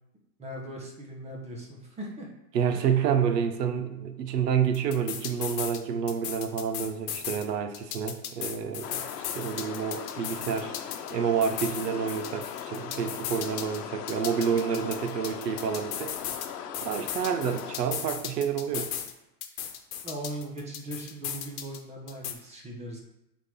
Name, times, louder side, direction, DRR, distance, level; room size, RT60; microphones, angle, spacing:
voice 1, 0.4-2.3 2.7-2.9 20.0-23.0, right 1 dB, 15° right, -1 dB, 1.3 m, -39 dB
voice 2, 2.5-9.0 9.4-10.7 11.1-16.1 16.8-18.9, right 7 dB, 85° right, 8 dB, 1.0 m, -28 dB
sound 1, 4.7-5.8 6.1-7.4 7.7-11.1 11.4-13.8 14.1-16.5 16.7-19.1 19.4-21.8 22.1-22.3, left 9 dB, 60° left, 1.2 m, -36 dB
sound 2, 8.8-17.8, left 9 dB, 75° left, 1.0 m, -39 dB
8.3 x 3.8 x 3.7 m, 0.88 s
supercardioid pair, 140°, 47 cm